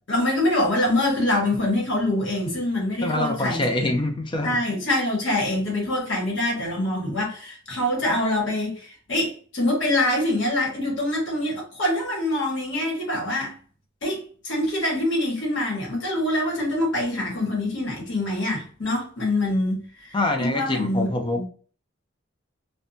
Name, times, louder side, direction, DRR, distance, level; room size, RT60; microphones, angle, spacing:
voice 1, 0.1-3.9 4.4-13.6 14.0-21.5, left 1 dB, 65° left, 1.1 m, -25 dB
voice 2, 3.0-4.5 20.1-21.4, left 2 dB, 25° left, 0.4 m, -25 dB
2.6 x 2.1 x 2.6 m
head